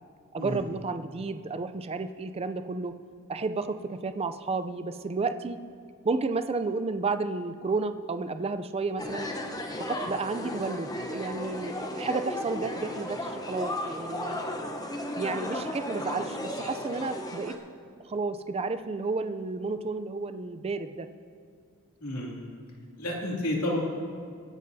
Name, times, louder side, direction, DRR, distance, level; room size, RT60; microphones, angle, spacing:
voice 1, 0.3-2.9 3.3-5.6 6.0-9.3 9.9-14.4 15.2-17.6 18.1-21.1, right 3 dB, 25° right, 10 dB, 0.4 m, -32 dB
sound 1, 9.0-17.6, left 1 dB, 15° left, 0.8 m, -35 dB
voice 2, 22.0-22.5 23.0-23.8, left 1 dB, 80° left, -3 dB, 2.6 m, -31 dB
24.5 x 10.5 x 2.7 m, 2.3 s
head